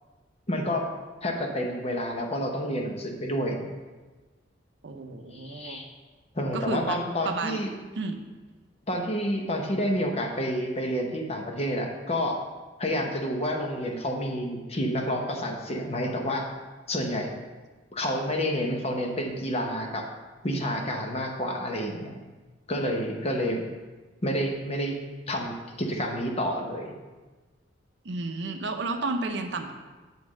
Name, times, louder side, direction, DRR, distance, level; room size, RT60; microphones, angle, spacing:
voice 1, 0.5-0.8 1.2-3.7 5.3-5.9 6.3-7.7 8.9-12.4 12.8-16.4 16.9-17.3 17.9-20.0 20.4-22.1 22.7-23.6 24.2-25.0 25.3-26.9, equal, 35° left, 2 dB, 0.9 m, -29 dB
voice 2, 4.8-5.8 6.5-7.0 7.2-7.6 8.0-8.2 28.0-29.7, right 3 dB, 70° right, 6 dB, 0.7 m, -32 dB
8.4 x 3.5 x 6.2 m, 1.3 s
head